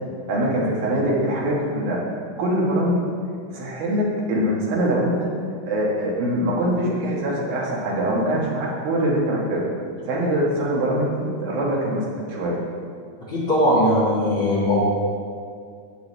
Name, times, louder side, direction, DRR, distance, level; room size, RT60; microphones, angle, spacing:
voice 1, 0.3-2.0 2.4-3.1 3.5-5.3 5.7-9.7 10.0-12.0 12.3-12.6, right 1 dB, 80° right, -4 dB, 3.3 m, -23 dB
voice 2, 13.2-14.8, left 1 dB, 40° left, -10 dB, 2.2 m, -19 dB
11.5 x 8.3 x 3.3 m, 2.3 s
omnidirectional pair, 4.1 m